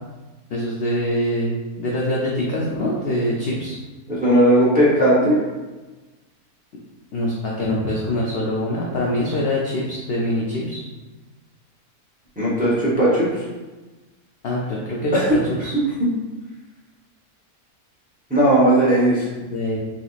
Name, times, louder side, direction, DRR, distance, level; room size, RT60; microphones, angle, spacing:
voice 1, 0.5-3.8 7.1-10.8 14.4-15.7 19.4-19.8, left 1 dB, 75° left, -4 dB, 0.5 m, -24 dB
voice 2, 4.1-5.4 12.4-13.4 15.1-15.3 18.3-19.3, right 1 dB, 10° right, -7 dB, 0.5 m, -17 dB
3.8 x 2.9 x 2.4 m, 1.2 s
omnidirectional pair, 1.6 m